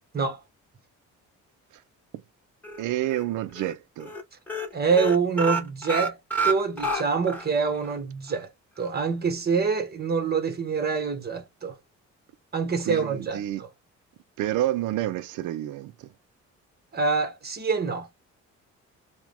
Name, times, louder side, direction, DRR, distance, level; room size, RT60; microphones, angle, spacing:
sound 1, 2.6-3.2 3.6-3.7 4.0-4.2 4.5-7.5 7.8-7.9 8.3-8.4, right 2 dB, 5° left, 1.5 m, -28 dB
voice 1, 2.8-4.1 12.8-13.6 14.4-16.1, right 14 dB, 85° right, 0.5 m, -29 dB
voice 2, 4.7-6.2 6.4-8.5 8.8-11.8 12.5-13.7 16.9-18.1, right 5 dB, 30° right, 1.3 m, -26 dB
4.6 x 2.4 x 3.4 m
cardioid pair, 90°, 30 cm